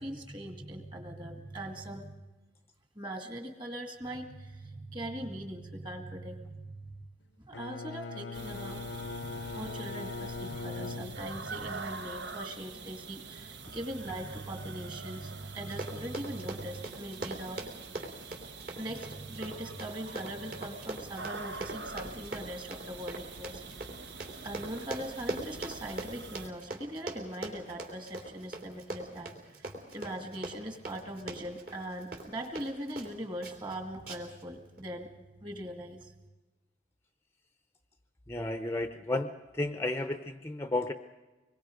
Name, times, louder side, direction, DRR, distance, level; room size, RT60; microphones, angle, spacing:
voice 1, 0.0-2.2 3.0-7.0 7.4-17.6 18.8-23.9 24.4-36.2, right 1 dB, 25° right, 5 dB, 2.1 m, -41 dB
Bowed string instrument, 7.5-11.7, left 3 dB, 75° left, 0.7 m, -40 dB
sound 1, 8.3-26.5, right 4 dB, 65° right, 1.2 m, -45 dB
Run, 15.6-33.1 33.4-33.7 34.1-34.4 34.8-34.9, right 2 dB, 50° right, 3.2 m, -41 dB
voice 2, 38.3-40.9, left 2 dB, 15° left, 7 dB, 0.7 m, -33 dB
25.0 x 22.0 x 5.2 m, 1.1 s
head